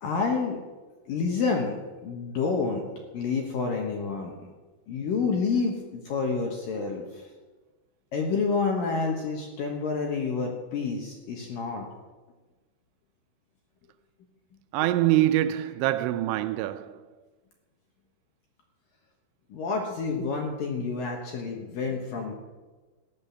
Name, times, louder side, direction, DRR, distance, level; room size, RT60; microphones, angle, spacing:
voice 1, 0.0-0.6 1.1-1.8 2.0-2.9 3.1-4.3 4.9-7.2 8.1-11.9 19.5-22.3, left 4 dB, 65° left, 2.3 m, -28 dB
voice 2, 14.7-17.0, right 14 dB, 85° right, 3.0 m, -24 dB
15.0 x 10.5 x 7.0 m
omnidirectional pair, 5.5 m